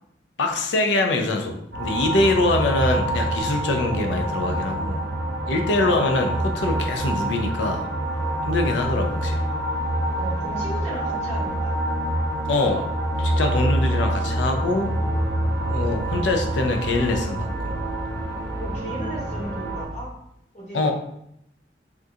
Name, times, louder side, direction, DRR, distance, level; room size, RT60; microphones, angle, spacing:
voice 1, 0.4-5.0 5.5-7.9 8.5-9.4 12.5-12.9 13.2-14.9 15.7-17.5 20.7-20.9, left 2 dB, 80° left, 4 dB, 0.4 m, -23 dB
sound 1, 1.7-19.9, right 1 dB, 65° right, 0.6 m, -26 dB
voice 2, 10.1-11.7 18.6-20.1 20.5-20.9, equal, 40° left, -5 dB, 1.1 m, -35 dB
3.5 x 2.4 x 2.7 m, 0.75 s
head